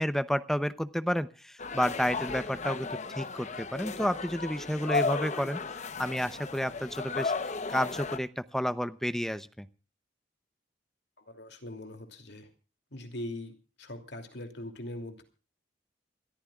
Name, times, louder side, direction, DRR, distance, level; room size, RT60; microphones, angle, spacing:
voice 1, 0.0-5.6 6.0-9.7, equal, ahead, 13 dB, 0.7 m, -31 dB
sound 1, 1.6-8.2, left 4 dB, 40° left, 0.9 m, -34 dB
voice 2, 11.2-12.5 12.9-15.2, left 1 dB, 65° left, 6 dB, 2.7 m, -41 dB
27.5 x 14.0 x 2.4 m, 0.36 s
head